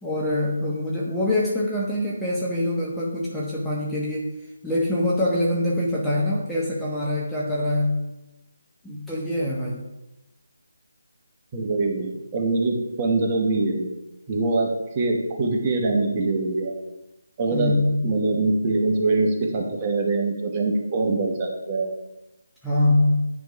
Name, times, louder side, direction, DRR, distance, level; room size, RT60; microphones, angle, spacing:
voice 1, 0.0-4.3 4.6-8.0 8.8-9.9 17.5-18.1 22.6-23.3, left 1 dB, 5° left, -7 dB, 0.7 m, -24 dB
voice 2, 11.5-13.9 14.3-16.7 17.4-17.7 18.0-21.9, right 3 dB, 25° right, 0 dB, 1.0 m, -23 dB
9.2 x 3.2 x 4.6 m, 0.95 s
figure-of-eight pair, 165°, 0 cm